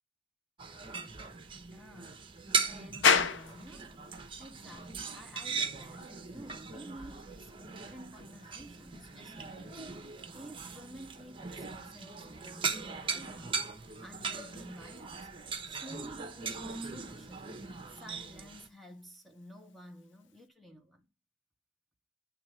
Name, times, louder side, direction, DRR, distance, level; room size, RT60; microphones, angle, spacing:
sound 1, 0.6-18.7, right 4 dB, 25° right, 1.0 m, -39 dB
voice 1, 1.7-2.2 2.7-3.9 4.4-13.6 14.0-15.3 15.6-17.4 17.9-21.1, equal, ahead, 0.7 m, -51 dB
sound 2, 3.0-20.5, left 6 dB, 65° left, 0.7 m, -39 dB
9.4 x 3.3 x 6.1 m
head